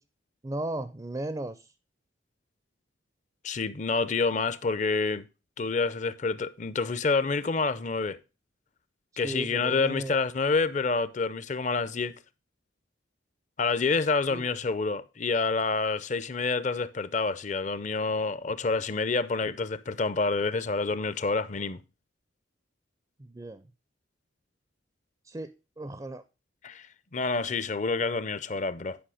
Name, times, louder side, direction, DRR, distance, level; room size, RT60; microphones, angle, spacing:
voice 1, 0.4-1.7 9.1-10.2 14.3-14.4 23.2-23.7 25.2-26.2, right 1 dB, 20° right, 0.4 m, -36 dB
voice 2, 3.4-5.3 5.6-8.2 9.2-12.1 13.6-21.8 26.6-26.9 27.1-29.0, left 4 dB, 40° left, 0.5 m, -28 dB
10.0 x 5.6 x 4.8 m
head